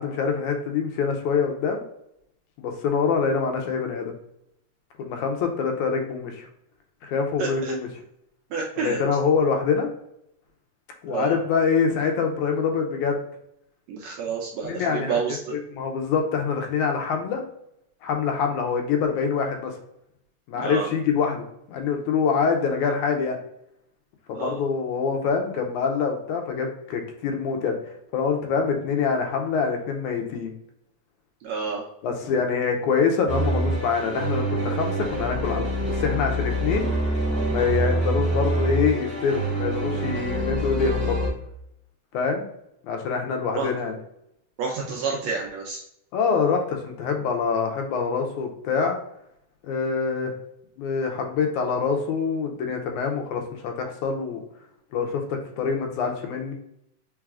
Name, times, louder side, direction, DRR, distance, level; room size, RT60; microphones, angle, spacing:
voice 1, 0.0-1.8 2.6-4.1 5.0-6.5 7.0-7.9 8.8-9.9 11.0-13.2 14.6-15.2 15.5-17.4 18.0-19.7 20.5-23.4 24.3-30.5 32.0-36.9 37.5-41.2 42.1-42.5 42.8-44.0 46.1-49.0 49.6-50.3 50.8-54.4 54.9-56.5, left 5 dB, 75° left, 3 dB, 1.9 m, -25 dB
voice 2, 7.4-7.7 8.5-9.0 11.1-11.4 13.9-15.5 20.5-20.9 24.3-24.6 31.4-31.8 43.5-43.7 44.6-45.8, right 5 dB, 80° right, -1 dB, 1.6 m, -29 dB
sound 1, 33.3-41.3, right 1 dB, 50° right, 0.6 m, -26 dB
4.6 x 4.0 x 2.4 m, 0.77 s
omnidirectional pair, 3.7 m